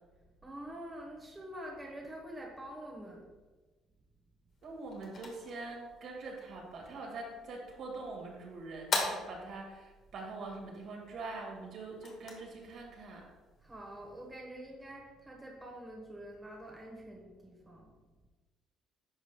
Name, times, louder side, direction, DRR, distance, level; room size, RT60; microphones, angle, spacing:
voice 1, 0.4-3.3 13.6-17.9, right 1 dB, 15° right, -1 dB, 1.0 m, -46 dB
sound 1, 4.5-14.3, left 3 dB, 55° left, 1.4 m, -43 dB
voice 2, 4.6-13.2, right 3 dB, 60° right, -1 dB, 1.9 m, -44 dB
10.0 x 5.3 x 2.2 m, 1.3 s
cardioid pair, 110°, 0 cm